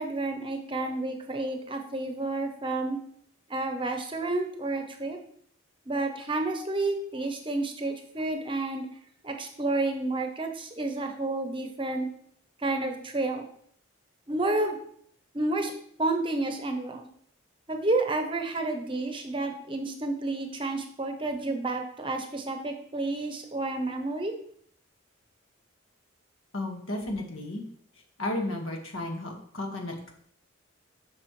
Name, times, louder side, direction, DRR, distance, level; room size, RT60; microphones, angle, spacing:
voice 1, 0.0-3.0 3.5-5.2 5.9-8.9 9.2-12.1 12.6-13.5 14.3-14.8 15.3-15.7 16.0-17.1 17.7-24.3, right 2 dB, 25° right, 5 dB, 0.8 m, -30 dB
voice 2, 26.5-27.6 28.2-30.1, left 1 dB, 80° left, 2 dB, 1.6 m, -33 dB
8.7 x 6.2 x 3.1 m, 0.62 s
head